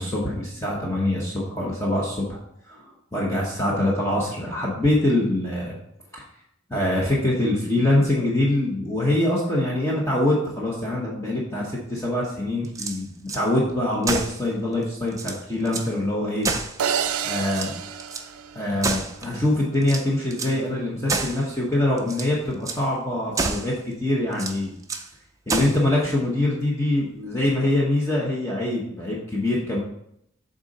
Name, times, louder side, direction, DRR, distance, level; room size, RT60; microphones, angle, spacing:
voice 1, 0.0-2.4 2.7-2.8 3.1-5.8 6.1-6.2 6.7-16.5 17.2-17.7 18.5-24.7 25.5-29.8, left 1 dB, 15° left, -5 dB, 0.9 m, -24 dB
sound 1, 12.6-13.4 14.0-14.4 14.8-14.9 15.1-15.9 16.4-17.1 17.5-18.3 18.8-19.4 19.8-20.6 21.1-21.5 22.0-22.3 22.6-22.8 23.3-23.8 24.3-25.1 25.5-25.9, right 3 dB, 15° right, 0.4 m, -29 dB
sound 2, 16.8-19.1, right 7 dB, 85° right, 0.5 m, -29 dB
6.9 x 3.8 x 5.3 m, 0.76 s
head